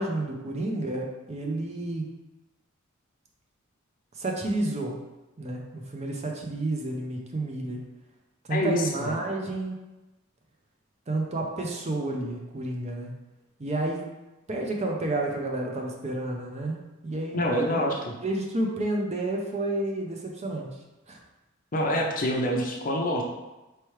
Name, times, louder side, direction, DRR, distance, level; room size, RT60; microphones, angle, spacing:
voice 1, 0.0-2.1 4.2-5.0 5.4-7.8 8.5-9.8 11.1-13.1 13.6-14.0 14.5-17.8 18.2-20.7 21.1-21.2, right 2 dB, 30° right, 1 dB, 0.5 m, -30 dB
voice 2, 8.5-9.1 17.3-18.1 21.7-23.2, equal, 40° left, 1 dB, 0.6 m, -26 dB
4.5 x 3.2 x 3.1 m, 1.1 s
head